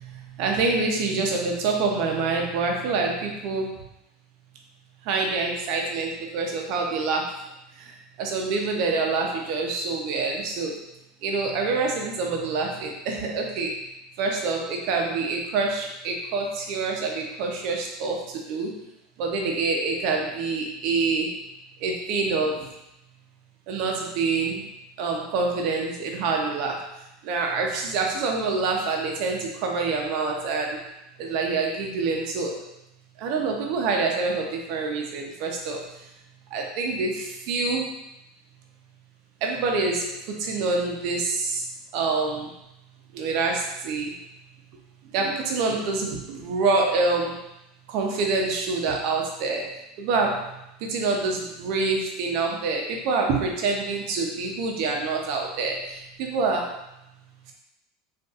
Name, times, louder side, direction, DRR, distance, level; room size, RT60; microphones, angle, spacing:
voice 1, 0.4-3.7 5.1-7.3 8.2-10.7 11.2-13.7 14.2-18.2 18.5-18.7 19.2-21.3 21.8-22.6 23.7-24.6 25.0-26.8 27.2-30.8 31.2-32.6 33.2-35.8 36.5-37.9 39.4-40.1 40.4-41.6 41.9-42.5 43.1-44.1 45.1-47.4 47.9-49.6 50.0-50.5 50.9-55.8 56.2-56.7, right 3 dB, 60° right, 1 dB, 0.7 m, -26 dB
4.0 x 2.5 x 2.4 m, 0.89 s
supercardioid pair, 115°, 0 cm